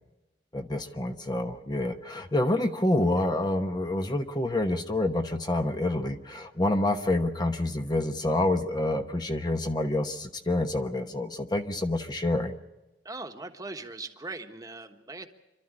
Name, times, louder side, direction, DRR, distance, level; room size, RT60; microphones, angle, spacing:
voice 1, 0.5-12.5, left 1 dB, 25° left, 6 dB, 1.0 m, -27 dB
voice 2, 13.0-15.3, right 3 dB, 20° right, 6 dB, 1.3 m, -40 dB
28.0 x 12.5 x 9.8 m, 1.1 s
head